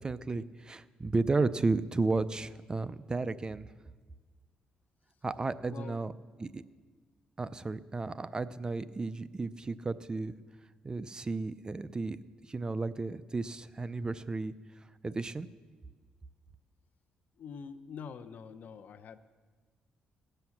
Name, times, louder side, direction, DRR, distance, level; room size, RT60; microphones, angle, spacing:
voice 1, 0.0-3.7 5.2-6.1 6.4-6.6 7.4-10.3 10.8-12.2 12.5-14.5 15.0-15.5, right 3 dB, 25° right, 15 dB, 0.5 m, -33 dB
voice 2, 5.7-6.0 17.4-19.2, left 6 dB, 60° left, 10 dB, 0.8 m, -45 dB
18.0 x 7.8 x 7.2 m, 1.4 s
cardioid pair, 95°, 3 cm